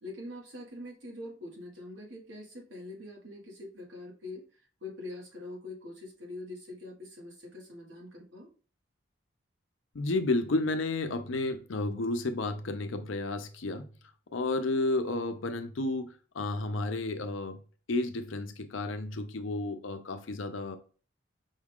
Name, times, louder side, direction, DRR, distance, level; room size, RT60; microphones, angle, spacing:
voice 1, 0.0-4.4 4.8-8.5, left 2 dB, 75° right, 0 dB, 1.5 m, -44 dB
voice 2, 9.9-13.9 14.3-17.6 17.9-20.8, left 2 dB, 80° left, 7 dB, 0.6 m, -32 dB
5.4 x 2.4 x 3.5 m, 0.38 s
head